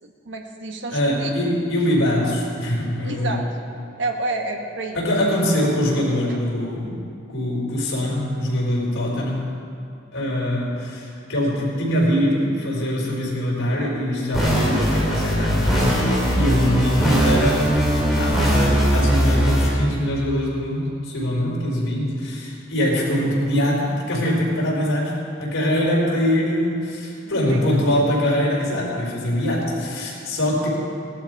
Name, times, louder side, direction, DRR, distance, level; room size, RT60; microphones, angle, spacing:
voice 1, 0.0-1.3 3.0-3.4 4.0-5.0 6.3-6.4 27.2-27.8, right 2 dB, 65° right, 3 dB, 1.4 m, -30 dB
voice 2, 0.9-3.4 4.9-7.0 7.3-9.5 10.1-15.8 16.4-17.7 18.1-18.6 18.9-30.7, equal, 90° left, -4 dB, 4.5 m, -23 dB
sound 1, 14.3-19.7, equal, ahead, 3.3 m, -19 dB
17.5 x 12.0 x 4.8 m, 2.4 s
head